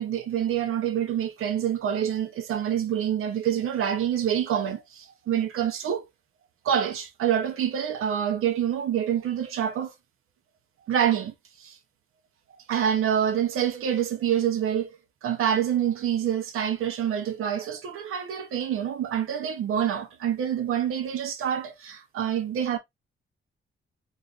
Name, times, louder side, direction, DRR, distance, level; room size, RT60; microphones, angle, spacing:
voice 1, 0.0-6.0 6.6-9.9 10.9-11.8 12.7-14.9 15.2-22.8, right 9 dB, 85° right, 0.8 m, -26 dB
3.8 x 3.2 x 2.5 m
wide cardioid pair, 140°, 21 cm